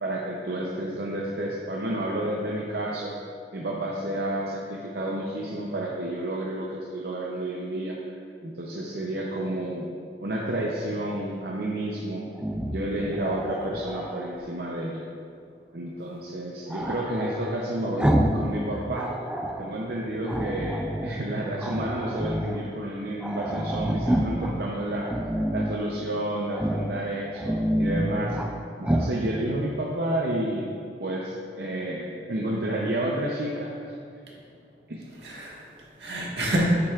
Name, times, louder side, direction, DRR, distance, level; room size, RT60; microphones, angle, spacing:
voice 1, 0.0-3.1 3.5-8.0 8.4-9.9 10.2-12.3 12.7-15.0 15.7-19.1 19.6-25.2 25.5-28.4 28.8-30.7 31.0-34.0 34.9-35.0, right 1 dB, 65° right, -3 dB, 0.7 m, -30 dB
Growling, 12.3-14.3 16.7-18.5 18.8-19.7 20.3-21.2 21.6-22.6 22.9-23.0 23.2-24.5 25.0-25.8 26.5-26.9 27.3-28.5 28.8-29.1, right 1 dB, 5° right, 0.4 m, -28 dB
voice 2, 34.2-34.6 35.1-36.6, right 2 dB, 80° right, -4 dB, 1.6 m, -33 dB
8.7 x 7.6 x 2.4 m, 2.3 s
head